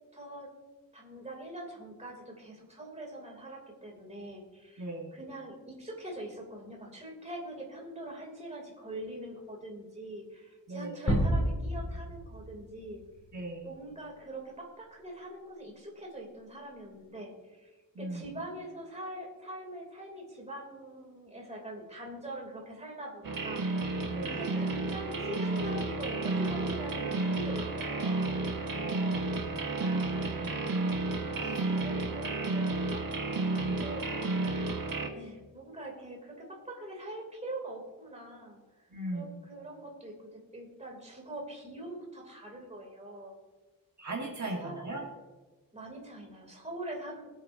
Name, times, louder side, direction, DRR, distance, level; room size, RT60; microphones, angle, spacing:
voice 1, 0.1-0.5 0.9-13.0 13.6-17.7 18.0-28.4 31.3-34.1 35.1-43.4 44.6-44.8 45.7-47.3, right 1 dB, 20° right, -1 dB, 3.0 m, -43 dB
voice 2, 4.8-5.2 10.7-11.1 13.3-13.7 18.0-18.3 24.1-24.4 28.7-30.6 31.1-31.6 33.6-33.8 38.9-39.3 44.0-45.1, right 2 dB, 50° right, -2 dB, 1.7 m, -39 dB
sound 1, 11.1-13.5, equal, 45° left, 2.8 m, -30 dB
sound 2, 23.2-35.1, right 3 dB, 70° right, 1.5 m, -32 dB
23.0 x 8.5 x 2.7 m, 1.2 s
wide cardioid pair, 160°, 35 cm